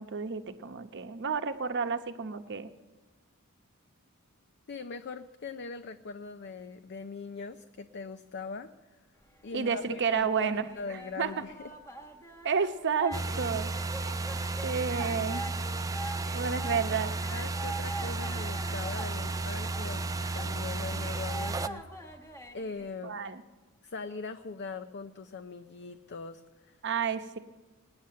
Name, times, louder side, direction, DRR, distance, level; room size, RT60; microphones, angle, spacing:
voice 1, 0.0-2.7 9.5-10.7 11.2-11.3 12.4-13.7 14.6-15.5 16.3-17.1 23.0-23.4 26.8-27.4, right 6 dB, 55° right, 9 dB, 0.9 m, -31 dB
voice 2, 4.7-9.0 9.4-11.7 16.4-16.7 17.3-22.0 22.5-23.2 23.8-26.8, left 4 dB, 50° left, 9 dB, 0.6 m, -41 dB
sound 1, 9.5-23.0, right 1 dB, 10° left, 1.3 m, -44 dB
sound 2, 13.1-21.7, right 3 dB, 15° right, 0.4 m, -33 dB
19.5 x 9.7 x 7.6 m, 1.2 s
head